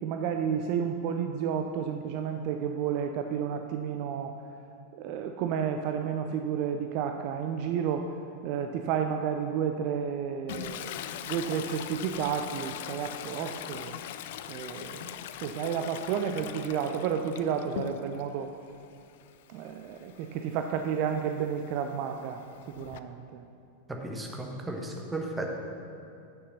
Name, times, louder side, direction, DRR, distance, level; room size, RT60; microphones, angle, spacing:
voice 1, 0.0-4.3 4.9-8.1 8.4-10.9 11.2-14.0 14.5-15.1 15.4-18.5 19.5-22.4 22.8-23.4, right 7 dB, 45° right, 5 dB, 0.4 m, -31 dB
Toilet flush, 10.5-18.3 18.7-23.0, left 10 dB, 55° left, 0.3 m, -41 dB
voice 2, 23.9-25.5, right 2 dB, 10° right, 1 dB, 1.1 m, -35 dB
7.9 x 6.6 x 5.6 m, 2.6 s
figure-of-eight pair, 90°, 0 cm